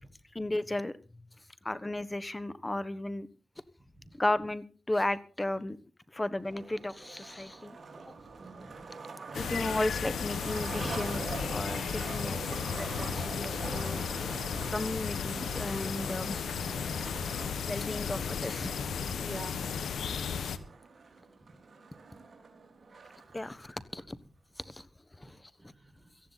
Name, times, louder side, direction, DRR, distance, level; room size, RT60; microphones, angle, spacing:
voice 1, 0.3-0.9 1.6-3.3 4.2-5.8 6.1-7.8 9.3-14.0 14.7-16.7 17.6-19.1 23.3-24.2 24.6-24.9 25.2-25.4, left 1 dB, 20° left, 15 dB, 1.3 m, -34 dB
Skateboard, 6.4-23.4, right 4 dB, 55° right, 4.1 m, -45 dB
voice 2, 8.4-8.8 9.4-9.5 16.7-17.0 19.2-20.2 25.2-25.3 25.6-26.1, right 2 dB, 20° right, 6 dB, 5.2 m, -47 dB
sound 1, 9.3-20.6, left 7 dB, 85° left, 1.1 m, -34 dB
18.0 x 14.5 x 4.1 m, 0.35 s
cardioid pair, 65°, 0 cm